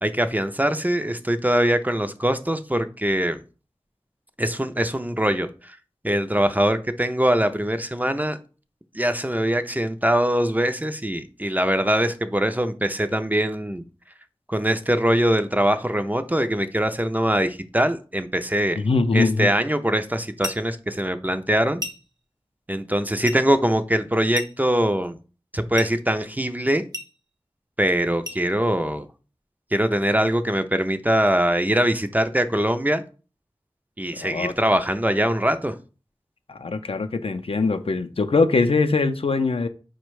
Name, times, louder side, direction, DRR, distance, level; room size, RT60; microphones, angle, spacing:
voice 1, 0.0-3.4 4.4-5.8 6.0-8.4 8.9-13.8 14.5-18.8 19.1-21.8 22.7-25.2 25.5-26.8 27.8-29.1 29.7-33.0 34.0-35.8, right 1 dB, 15° right, 0.4 m, -22 dB
voice 2, 18.8-19.5 34.2-34.5 36.5-39.7, left 3 dB, 70° left, 0.4 m, -22 dB
sound 1, 20.4-20.7 21.8-22.2 23.2-23.5 24.3-24.7 25.8-26.0 26.9-27.2 28.2-28.5, equal, 40° right, 0.8 m, -34 dB
4.8 x 2.1 x 4.6 m
wide cardioid pair, 40°, 10 cm